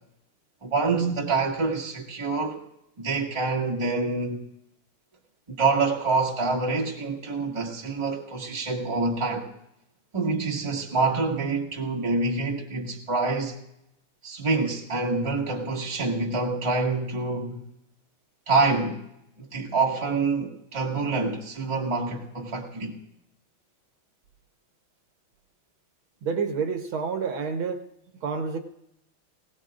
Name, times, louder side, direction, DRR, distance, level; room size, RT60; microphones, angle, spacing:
voice 1, 0.6-2.6 3.0-4.4 5.5-9.5 10.1-13.6 14.2-17.6 18.5-19.0 19.4-22.9, right 3 dB, 15° right, 1.4 m, -26 dB
voice 2, 26.2-27.9 28.2-28.6, right 5 dB, 70° right, 1.7 m, -28 dB
20.0 x 18.0 x 2.5 m
omnidirectional pair, 2.4 m